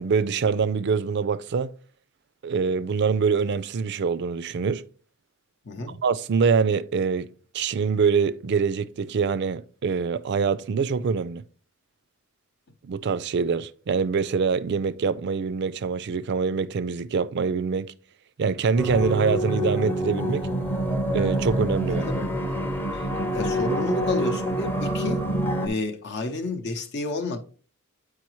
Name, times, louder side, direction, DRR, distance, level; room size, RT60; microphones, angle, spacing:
voice 1, 0.0-1.7 2.4-4.8 6.0-7.3 7.5-11.4 12.8-17.9 18.4-20.5 21.1-22.0, right 5 dB, 50° right, 0.4 m, -24 dB
voice 2, 5.6-6.0 21.9-22.3 22.9-23.1 23.3-25.2 25.6-27.4, left 2 dB, 55° left, 0.7 m, -31 dB
sound 1, 18.8-25.7, equal, 10° left, 0.6 m, -26 dB
8.4 x 4.8 x 3.1 m
head